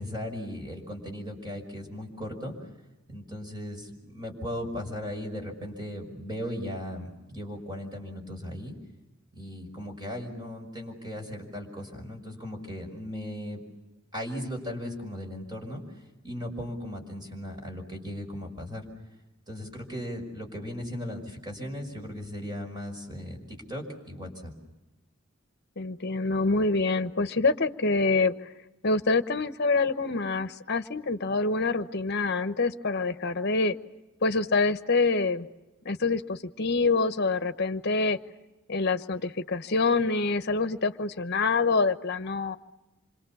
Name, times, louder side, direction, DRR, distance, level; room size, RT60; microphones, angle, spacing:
voice 1, 0.0-2.5 3.1-8.7 9.4-13.6 14.1-15.8 16.2-18.8 19.5-23.4 23.7-24.5, equal, 20° right, 2 dB, 5.7 m, -37 dB
voice 2, 25.8-28.3 28.8-33.8 34.2-35.5 35.8-38.2 38.7-42.6, left 3 dB, 50° left, 10 dB, 1.1 m, -26 dB
27.5 x 25.5 x 7.2 m, 1.0 s
head